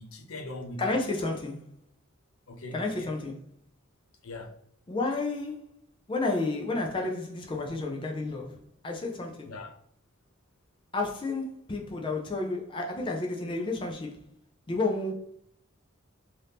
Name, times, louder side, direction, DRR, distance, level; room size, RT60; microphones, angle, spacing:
voice 1, 0.0-0.8 1.2-1.3 2.5-3.1 4.2-4.5 9.4-9.7, left 2 dB, 85° left, 0.6 m, -41 dB
voice 2, 0.8-1.6 2.7-3.4 4.9-5.7 6.1-8.6 8.8-9.5 10.9-14.2 14.7-15.1, left 2 dB, 25° left, 0.4 m, -31 dB
2.8 x 2.5 x 3.4 m
head